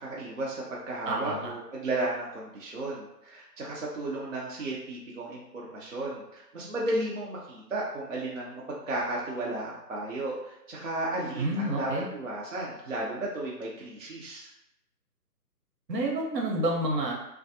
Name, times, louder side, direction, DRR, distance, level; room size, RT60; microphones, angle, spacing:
voice 1, 0.0-14.5, right 2 dB, 50° right, -5 dB, 0.5 m, -34 dB
voice 2, 1.1-1.5 11.4-12.1 15.9-17.1, right 1 dB, 75° right, -1 dB, 0.9 m, -29 dB
2.5 x 2.1 x 2.7 m, 0.86 s
hypercardioid pair, 175°, 50 cm